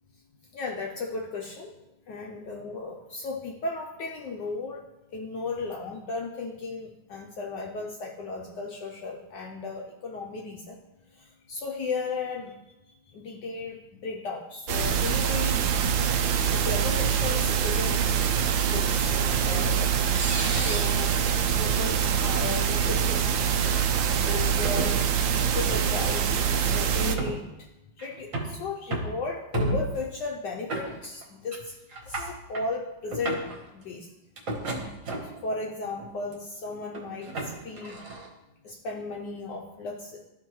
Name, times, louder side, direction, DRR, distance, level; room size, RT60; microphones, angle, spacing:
voice 1, 0.5-1.7 2.1-4.8 5.1-10.8 11.1-12.5 12.9-15.6 16.3-18.0 18.3-19.9 20.5-21.1 21.6-23.4 24.0-27.7 28.0-31.8 32.1-33.4 33.7-34.1 35.2-38.0 38.6-40.3, left 3 dB, 70° left, 0 dB, 1.2 m, -35 dB
sound 1, 14.7-27.2, right 7 dB, 75° right, 1.3 m, -25 dB
sound 2, 18.9-19.0 20.1-21.0 21.8-22.0 22.4-22.5 23.5-23.8 24.5-24.9 26.1-26.2 26.9-27.4 28.0-28.6 28.9-29.2 29.5-30.0 30.7-31.2 31.5-31.6 31.9-32.7 33.1-33.6 34.4-35.4 36.0-36.3 36.9-38.3, right 2 dB, 45° right, 1.4 m, -32 dB
12.5 x 4.5 x 3.1 m, 0.95 s
omnidirectional pair, 2.3 m